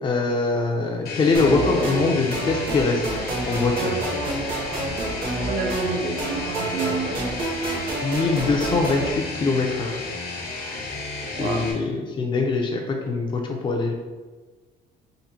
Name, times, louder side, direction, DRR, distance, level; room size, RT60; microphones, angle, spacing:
voice 1, 0.0-4.0 8.0-10.0 11.4-13.9, left 3 dB, 30° left, 1 dB, 0.5 m, -23 dB
sound 1, 1.1-11.7, left 3 dB, 65° left, 1.0 m, -33 dB
sound 2, 1.3-9.1, right 2 dB, 60° right, 1.0 m, -29 dB
voice 2, 5.4-7.4 11.3-11.7, right 5 dB, 75° right, 3 dB, 0.6 m, -29 dB
3.8 x 2.1 x 4.2 m, 1.3 s
cardioid pair, 110°, 17 cm